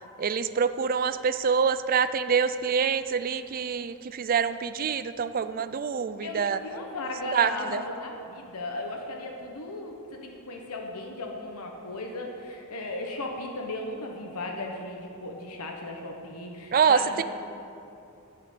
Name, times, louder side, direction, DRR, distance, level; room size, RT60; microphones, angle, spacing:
voice 1, 0.2-6.6 7.3-7.5 16.7-17.2, right 6 dB, 40° right, 13 dB, 0.4 m, -25 dB
voice 2, 6.2-17.2, left 2 dB, 85° left, 1 dB, 1.2 m, -36 dB
11.5 x 5.9 x 8.5 m, 2.7 s
head